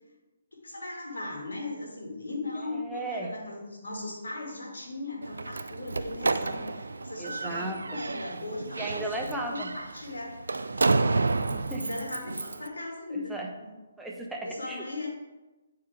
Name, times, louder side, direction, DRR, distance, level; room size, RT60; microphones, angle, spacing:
voice 1, 0.6-9.4 9.7-10.3 10.7-11.1 11.8-13.7 14.4-15.1, left 2 dB, 80° left, -2 dB, 2.3 m, -38 dB
voice 2, 2.7-3.3 7.2-8.0 8.8-9.7 11.5-11.8 13.3-13.5 14.0-14.9, right 2 dB, 5° right, -1 dB, 0.8 m, -35 dB
Slam, 5.2-12.7, right 3 dB, 85° right, 0.4 m, -30 dB
8.8 x 4.7 x 3.6 m, 1.1 s
hypercardioid pair, 145°, 0 cm